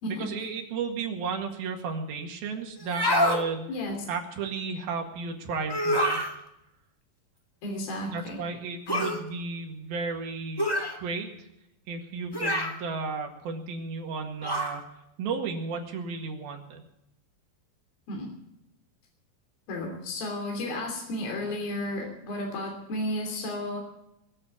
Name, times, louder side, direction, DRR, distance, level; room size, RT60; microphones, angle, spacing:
voice 1, 0.1-3.7 4.1-6.3 8.0-11.5 11.9-14.9 15.2-16.8, right 4 dB, 80° right, 2 dB, 3.8 m, -34 dB
sound 1, 2.8-3.4 5.7-6.3 8.9-9.2 10.6-11.0 12.3-12.8 14.4-14.8, equal, 25° left, 0.4 m, -26 dB
voice 2, 7.6-8.4 8.9-9.1 18.1-18.3 19.7-23.8, left 1 dB, 70° left, 1 dB, 4.8 m, -33 dB
21.5 x 7.7 x 8.7 m, 0.85 s
omnidirectional pair, 4.2 m